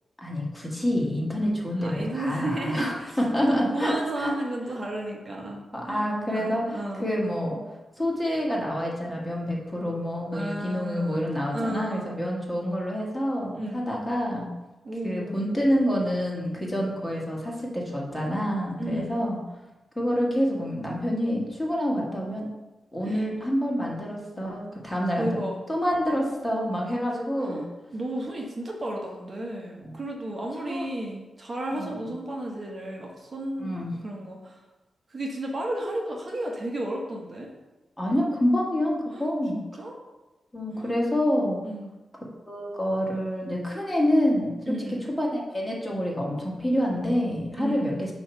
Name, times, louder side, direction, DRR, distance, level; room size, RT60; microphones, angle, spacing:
voice 1, 0.2-4.3 5.7-7.6 8.0-14.5 15.0-19.4 20.0-22.5 22.9-27.6 29.8-30.0 30.7-30.8 31.7-32.0 33.6-33.9 38.0-39.6 40.5-41.6 42.5-44.7 45.2-48.1, equal, 10° left, -3 dB, 1.7 m, -27 dB
voice 2, 1.8-3.2 3.5-6.0 6.3-7.1 10.3-11.2 11.5-12.2 13.5-13.8 14.8-15.4 18.8-19.3 23.0-23.3 25.2-25.5 27.4-33.7 34.0-34.6 35.1-37.5 39.1-39.3 39.5-40.0 40.8-41.0 41.6-41.9 44.7-45.0 47.6-48.0, right 1 dB, 45° right, -1 dB, 1.1 m, -33 dB
6.3 x 3.0 x 5.6 m, 1.1 s
cardioid pair, 65°, 0 cm